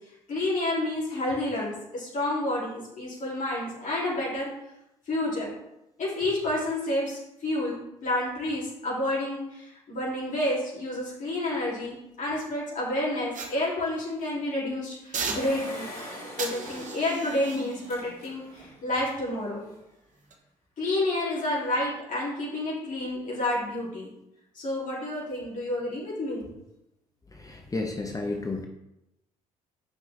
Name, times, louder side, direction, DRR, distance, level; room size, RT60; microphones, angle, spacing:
voice 1, 0.3-4.5 5.1-5.5 6.0-15.9 16.4-19.7 20.8-24.1 24.5-26.4, left 1 dB, 45° left, -6 dB, 3.1 m, -29 dB
sound 1, 13.3-14.3 15.1-15.9 16.4-19.6 20.1-20.3, right 4 dB, 40° right, 1.3 m, -38 dB
Engine, 15.3-18.8 19.3-19.4 19.5-19.6, left 1 dB, 80° left, 2.8 m, -41 dB
voice 2, 27.3-28.6, left 2 dB, 20° left, 2 dB, 1.1 m, -32 dB
8.3 x 5.8 x 3.5 m, 0.87 s
figure-of-eight pair, 50°, 19 cm